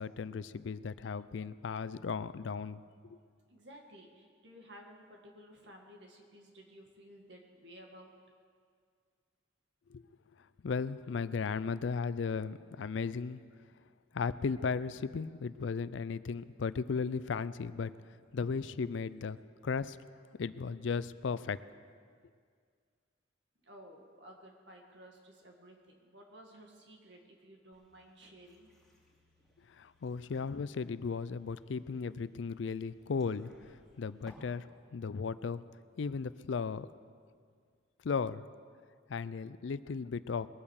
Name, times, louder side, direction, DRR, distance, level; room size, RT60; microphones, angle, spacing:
voice 1, 0.0-2.8 3.1-3.2 9.9-10.0 10.6-13.4 14.1-17.9 18.3-19.4 19.6-20.0 20.4-21.6 29.8-33.5 34.0-34.6 34.9-35.6 36.0-36.9 38.0-38.4 39.1-40.5, left 5 dB, 70° left, 16 dB, 0.4 m, -35 dB
voice 2, 3.5-8.1 23.6-28.7, equal, 60° right, 2 dB, 2.0 m, -55 dB
sound 1, 27.7-34.3, left 1 dB, ahead, 2.7 m, -66 dB
21.0 x 8.7 x 6.4 m, 2.1 s
head